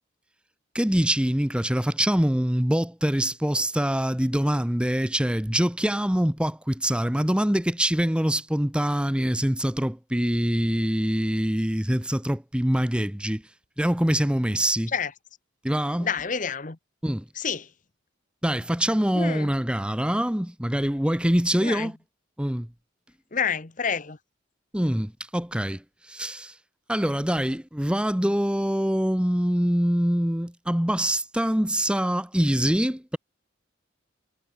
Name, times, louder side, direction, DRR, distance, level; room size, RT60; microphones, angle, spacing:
voice 1, 0.7-13.4 13.8-14.9 15.6-16.1 17.0-17.2 18.4-22.0 22.4-22.7 24.7-26.5 26.9-33.2, equal, 5° right, 0.9 m, -24 dB
voice 2, 16.0-16.8 17.3-17.7 19.1-19.5 21.6-21.9 23.3-24.2, left 6 dB, 40° left, 1.1 m, -28 dB
head